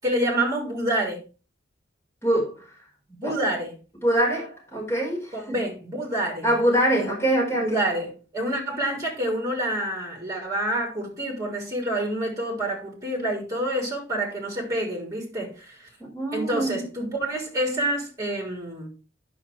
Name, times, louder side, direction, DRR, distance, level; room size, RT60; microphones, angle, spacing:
voice 1, 0.0-1.2 3.1-3.8 5.3-6.5 6.9-7.1 7.6-15.9 16.3-18.9, right 1 dB, 15° right, 3.2 m, -28 dB
voice 2, 2.2-2.7 3.2-3.3 4.0-5.6 6.4-7.8 16.1-16.7, right 1 dB, 15° left, 5.0 m, -24 dB
9.7 x 6.2 x 4.5 m
head